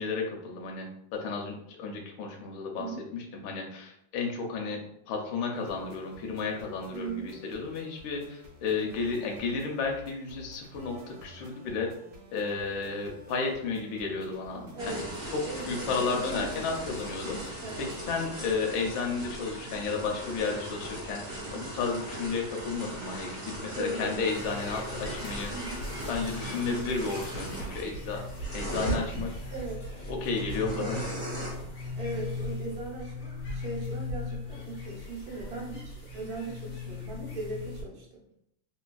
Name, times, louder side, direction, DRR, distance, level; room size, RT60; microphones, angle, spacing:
voice 1, 0.0-2.9 3.1-4.8 5.1-11.9 12.3-15.1 15.3-25.7 26.1-28.2 28.5-29.3 30.1-31.0, left 4 dB, 90° left, 2 dB, 1.4 m, -33 dB
sound 1, 5.5-18.2, equal, 75° right, 1.4 m, -51 dB
voice 2, 6.9-7.3 14.7-15.1 15.4-16.5 17.6-17.9 21.4-21.7 23.6-24.2 25.4-25.9 29.5-30.0 30.8-31.1 31.9-38.1, right 2 dB, 55° right, -4 dB, 1.3 m, -38 dB
sound 2, 14.8-29.0 30.4-31.5, right 1 dB, 35° right, 0.8 m, -39 dB
sound 3, 24.3-37.8, left 1 dB, 65° left, 1.4 m, -38 dB
3.3 x 2.8 x 2.2 m, 0.78 s
omnidirectional pair, 2.1 m